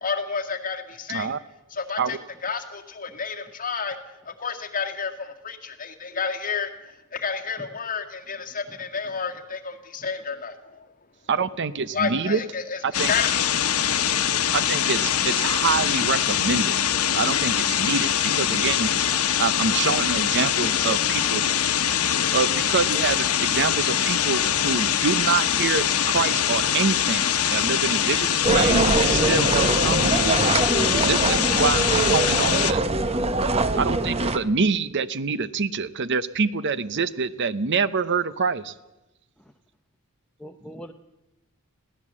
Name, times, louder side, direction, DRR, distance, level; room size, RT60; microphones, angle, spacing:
voice 1, 0.0-1.3 1.7-2.2 2.4-4.0 4.3-6.7 7.1-10.8 11.9-12.8 13.1-13.4, left 5 dB, 40° left, 4 dB, 2.0 m, -30 dB
voice 2, 1.1-1.4 2.0-2.2 11.3-12.4 12.8-13.1 14.5-16.8 17.1-18.9 19.4-21.4 22.3-30.2 31.0-32.8 33.7-38.7, right 5 dB, 55° right, 15 dB, 0.7 m, -26 dB
sound 1, 12.9-32.7, left 9 dB, 75° left, 1.1 m, -23 dB
voice 3, 19.8-21.0 39.4-39.5 40.4-40.9, equal, 5° left, 4 dB, 0.7 m, -43 dB
sound 2, 28.4-34.4, right 2 dB, 25° right, 0.9 m, -23 dB
21.5 x 16.5 x 7.5 m, 0.98 s
head